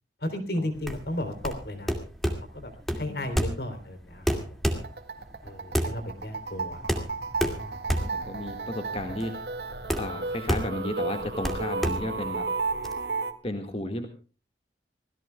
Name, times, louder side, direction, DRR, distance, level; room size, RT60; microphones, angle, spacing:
voice 1, 0.2-2.0 2.5-4.3 4.7-4.8 5.4-6.8 7.6-7.9, left 1 dB, 60° left, 8 dB, 3.5 m, -34 dB
sound 1, 0.8-12.9, equal, ahead, 2.2 m, -30 dB
sound 2, 4.7-13.3, right 3 dB, 70° right, 1.9 m, -33 dB
voice 2, 7.6-9.4 10.0-12.5 13.4-14.1, left 1 dB, 35° left, 5 dB, 1.8 m, -34 dB
26.0 x 17.0 x 2.3 m, 0.35 s
head